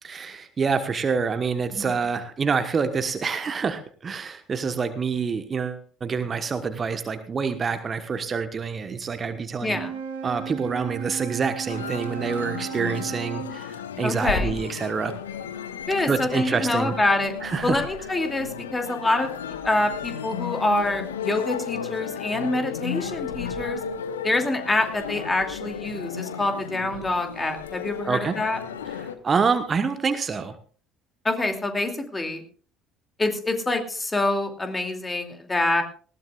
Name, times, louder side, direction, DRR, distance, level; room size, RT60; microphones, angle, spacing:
voice 1, 0.0-9.8 10.2-15.1 16.1-16.9 17.4-17.8 28.0-28.3 28.9-30.5, right 5 dB, 30° right, 10 dB, 1.2 m, -27 dB
voice 2, 9.6-10.0 14.0-14.6 15.9-17.3 17.6-19.3 19.6-23.8 24.2-28.6 31.2-32.4 33.2-35.8, left 2 dB, 15° left, 5 dB, 2.6 m, -26 dB
Wind instrument woodwind instrument, 9.6-13.5, right 9 dB, 70° right, 2.5 m, -35 dB
sound 1, 11.7-29.2, left 7 dB, 75° left, 1.0 m, -34 dB
19.5 x 16.5 x 2.4 m, 0.41 s
figure-of-eight pair, 60°, 0 cm